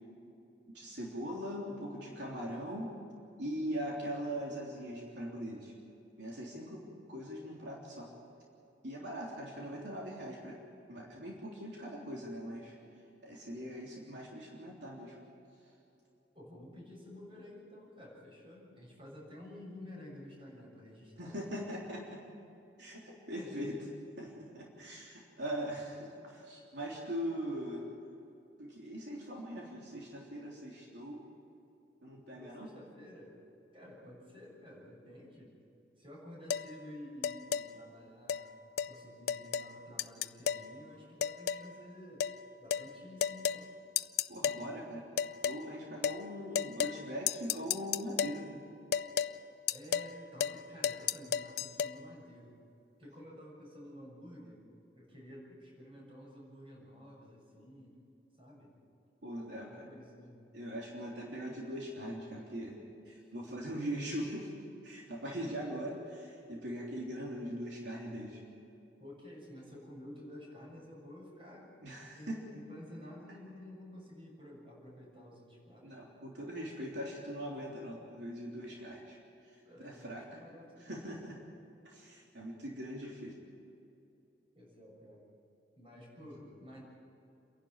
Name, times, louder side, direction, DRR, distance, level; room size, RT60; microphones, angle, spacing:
voice 1, 0.7-2.9 3.4-5.7 6.2-8.1 8.8-10.6 10.9-12.8 13.2-15.2 21.2-22.2 22.8-23.8 24.2-27.9 28.6-31.2 32.0-32.7 44.3-45.1 45.4-48.6 59.2-59.9 60.5-64.5 64.8-68.4 71.8-72.4 75.8-80.4 80.8-81.4 81.9-83.4 86.2-86.3, equal, 70° right, -3 dB, 3.5 m, -41 dB
voice 2, 16.3-21.6 23.4-23.7 32.3-33.4 33.7-35.6 36.0-38.5 38.8-42.3 42.6-43.7 49.7-52.5 53.0-54.6 54.9-58.0 58.4-58.7 59.4-60.4 63.1-63.4 69.0-71.7 72.1-76.0 79.6-81.2 84.5-85.2 85.7-86.8, left 1 dB, 30° right, -3 dB, 6.8 m, -51 dB
sound 1, 36.5-36.7 37.2-37.7 38.3-38.4 38.8-38.9 39.3-39.7 40.0-40.7 41.2-41.7 42.2-42.4 42.7-42.9 43.2-43.6 44.0-44.6 45.2-45.6 46.0-46.2 46.5-47.0 47.3-48.4 48.9-49.3 49.7-50.1 50.4-50.6 50.8-51.9, left 8 dB, 55° left, 0.5 m, -32 dB
29.0 x 11.5 x 8.9 m, 2.7 s
head